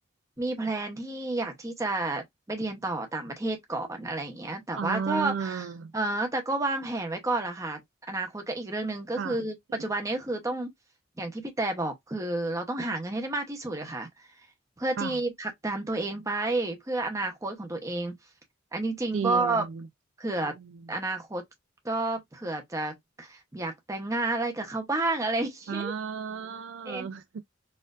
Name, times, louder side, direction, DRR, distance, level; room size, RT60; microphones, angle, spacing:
voice 1, 0.4-5.6 5.9-7.8 8.1-10.7 11.2-14.1 14.8-18.2 18.7-19.7 20.2-20.6 20.9-21.4 21.8-25.9 26.8-27.1, right 2 dB, 15° right, 0.8 m, -30 dB
voice 2, 4.7-5.9 9.2-9.5 15.0-15.2 19.1-19.9 20.4-20.9 25.7-27.4, right 6 dB, 60° right, 0.3 m, -34 dB
4.3 x 2.5 x 2.4 m
head